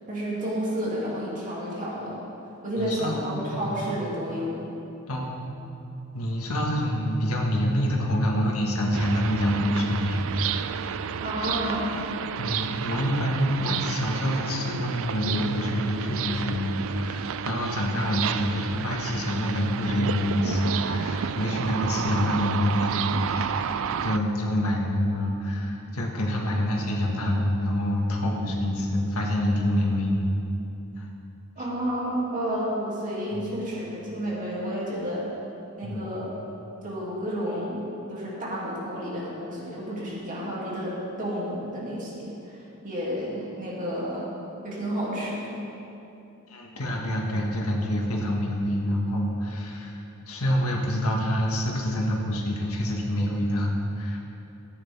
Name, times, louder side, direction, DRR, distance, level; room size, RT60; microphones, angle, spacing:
voice 1, 0.1-2.2 2.6-4.7 11.2-11.9 31.6-35.3 35.8-36.3 36.8-42.6 42.8-44.2 44.6-45.6, equal, 40° right, -6 dB, 2.7 m, -31 dB
voice 2, 2.8-3.8 5.1-5.5 6.1-10.6 12.4-30.3 31.0-31.1 33.3-33.5 35.8-36.1 46.5-54.2, equal, 85° left, -1 dB, 1.7 m, -27 dB
sound 1, 8.9-24.2, right 7 dB, 65° right, 0.4 m, -31 dB
14.5 x 9.6 x 3.6 m, 2.8 s
head